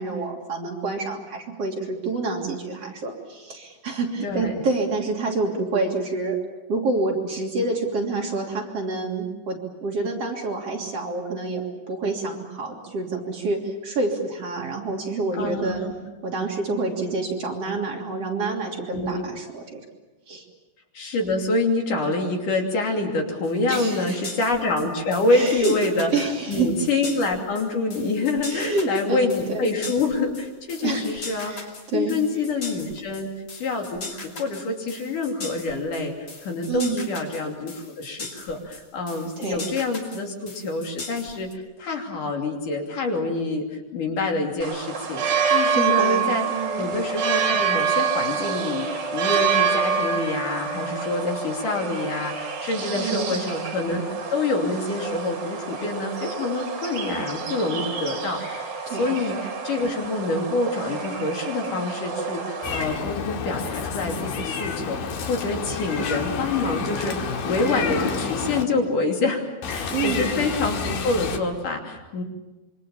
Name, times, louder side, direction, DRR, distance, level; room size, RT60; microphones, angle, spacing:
voice 1, 0.0-6.4 6.7-15.8 16.2-19.8 20.3-20.5 23.7-24.2 25.3-25.7 26.1-26.7 28.5-29.7 30.8-32.2 36.7-37.1 39.4-39.6 45.7-46.9 53.0-53.3 58.9-59.1 69.9-70.4, right 3 dB, 45° right, 0 dB, 3.9 m, -28 dB
voice 2, 4.2-4.6 15.4-16.0 18.9-19.3 20.9-41.5 41.8-45.2 45.5-46.5 46.8-54.0 54.3-58.6 58.9-59.4 59.6-69.4 69.7-72.2, left 3 dB, 65° left, 2 dB, 4.4 m, -26 dB
sound 1, 23.4-41.5, left 3 dB, 35° left, 3.3 m, -39 dB
sound 2, 44.6-62.8, right 6 dB, 70° right, 4.9 m, -27 dB
Meow, 62.6-68.6 69.6-71.4, left 6 dB, 85° left, 3.7 m, -29 dB
27.0 x 24.5 x 7.3 m, 1.1 s
omnidirectional pair, 4.1 m